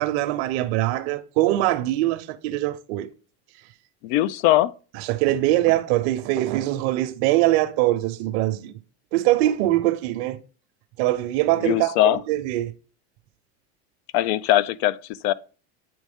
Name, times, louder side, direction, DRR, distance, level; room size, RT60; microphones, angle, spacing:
voice 1, 0.0-3.1 5.1-8.8 9.1-10.4 11.0-12.7, right 15 dB, 70° right, 0.8 m, -22 dB
voice 2, 4.0-4.7 11.6-12.2 14.1-15.3, left 14 dB, 65° left, 0.5 m, -21 dB
8.7 x 3.2 x 3.5 m
supercardioid pair, 125°, 33 cm